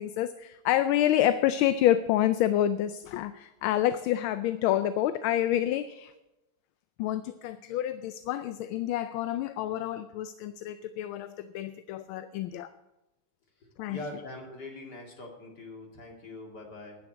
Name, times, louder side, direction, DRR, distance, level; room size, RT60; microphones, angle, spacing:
voice 1, 0.0-6.1 7.0-12.7 13.8-14.0, left 12 dB, 75° left, 12 dB, 1.3 m, -28 dB
voice 2, 13.9-17.0, left 2 dB, 50° left, 1 dB, 3.1 m, -42 dB
9.8 x 9.7 x 8.2 m, 0.99 s
omnidirectional pair, 2.4 m